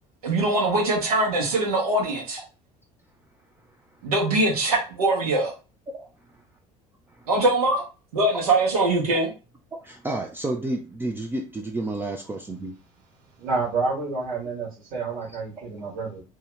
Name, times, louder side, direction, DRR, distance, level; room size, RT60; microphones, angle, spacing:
voice 1, 0.2-2.4 4.0-5.5 7.3-7.8 8.1-9.3, right 2 dB, 70° right, -1 dB, 0.8 m, -22 dB
voice 2, 9.8-12.7 15.6-15.7, right 2 dB, 10° right, 1 dB, 0.4 m, -30 dB
voice 3, 13.4-16.2, right 4 dB, 50° right, -2 dB, 1.1 m, -29 dB
2.7 x 2.2 x 3.1 m, 0.32 s
figure-of-eight pair, 60°, 20 cm